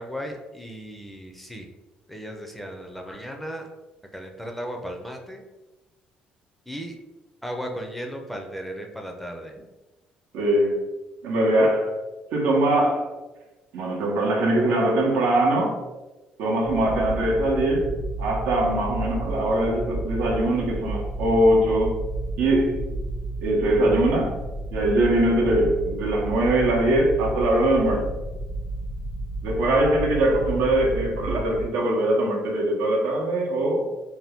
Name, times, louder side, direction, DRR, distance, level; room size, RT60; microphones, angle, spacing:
voice 1, 0.0-1.7 2.1-3.7 4.1-5.4 6.7-7.0 7.4-9.5, equal, 5° left, 3 dB, 0.4 m, -35 dB
voice 2, 10.3-10.9 11.2-12.0 12.3-13.1 13.7-15.8 16.4-22.0 22.4-22.9 23.4-24.4 24.7-28.1 29.4-33.9, right 1 dB, 85° right, 0 dB, 0.7 m, -22 dB
sound 1, 16.6-31.6, right 2 dB, 65° left, 0.7 m, -32 dB
2.7 x 2.2 x 3.4 m, 1.1 s
cardioid pair, 110°, 3 cm